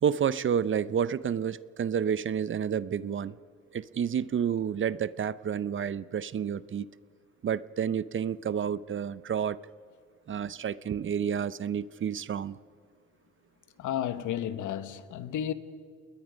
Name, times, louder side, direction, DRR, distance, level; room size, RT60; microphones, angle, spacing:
voice 1, 0.0-3.4 3.7-6.9 7.4-9.6 10.3-12.6, right 8 dB, 40° right, 0.7 m, -30 dB
voice 2, 13.8-15.5, left 10 dB, 80° left, 1.2 m, -32 dB
29.5 x 20.5 x 5.2 m
cardioid pair, 90°, 30 cm